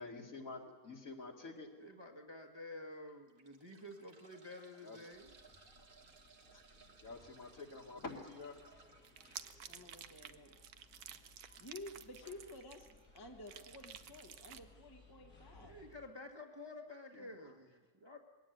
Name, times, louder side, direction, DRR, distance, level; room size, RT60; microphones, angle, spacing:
voice 1, 0.0-1.7 4.8-5.0 7.0-8.6 17.1-17.5, left 3 dB, 60° left, 1 dB, 2.8 m, -48 dB
sound 1, 1.2-1.4 2.0-2.1 3.1-9.5 11.1-11.2 11.5-11.6, right 4 dB, 40° right, 1.3 m, -64 dB
voice 2, 1.8-5.3 10.5-10.6 15.6-18.2, left 2 dB, 15° right, 1 dB, 1.5 m, -51 dB
UK Supermarket Ambience, 5.1-16.1, left 3 dB, 80° left, 6.2 m, -64 dB
sound 2, 9.0-13.2 13.5-14.6, right 9 dB, 80° right, 1.4 m, -52 dB
voice 3, 9.6-10.6 11.6-12.9 13.1-15.8, left 1 dB, 15° left, 3 dB, 1.4 m, -52 dB
21.5 x 17.5 x 9.2 m, 1.4 s
omnidirectional pair, 1.6 m